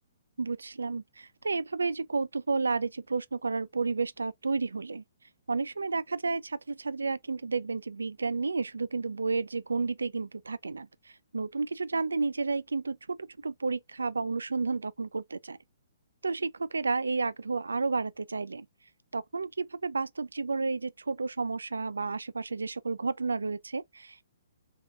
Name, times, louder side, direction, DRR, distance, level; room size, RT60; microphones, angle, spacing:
voice 1, 0.4-5.0 5.5-10.9 11.3-15.6 16.2-18.7 19.1-24.2, right 4 dB, 80° right, 0.3 m, -31 dB
3.6 x 3.2 x 2.4 m
figure-of-eight pair, 125°, 0 cm